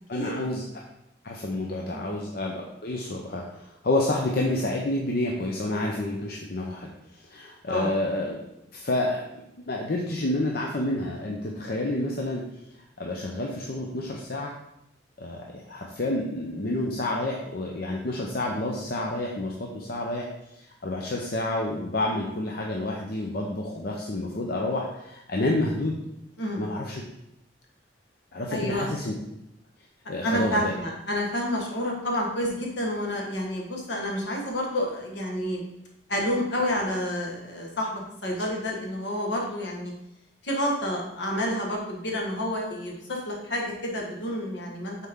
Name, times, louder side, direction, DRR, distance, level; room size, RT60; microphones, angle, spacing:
voice 1, 0.1-0.6 1.2-8.4 8.7-9.2 9.6-12.4 13.0-14.5 15.2-20.3 20.5-26.0 26.6-27.0 28.3-29.1 30.1-30.7, left 1 dB, 55° left, -1 dB, 0.7 m, -29 dB
voice 2, 28.5-28.9 30.2-35.6 36.1-39.9 40.4-45.0, left 1 dB, 70° left, -1 dB, 1.5 m, -29 dB
7.4 x 4.4 x 3.7 m, 0.82 s
head